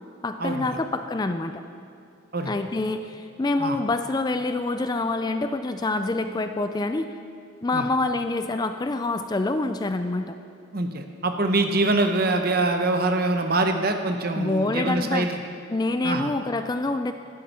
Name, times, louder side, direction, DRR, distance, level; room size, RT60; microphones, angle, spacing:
voice 1, 0.2-1.6 2.5-7.1 7.6-10.4 14.4-15.3 15.7-17.1, left 2 dB, 20° left, 8 dB, 0.3 m, -26 dB
voice 2, 10.7-15.4 16.0-16.3, right 2 dB, 45° right, 6 dB, 0.9 m, -24 dB
15.5 x 11.5 x 4.3 m, 2.5 s
head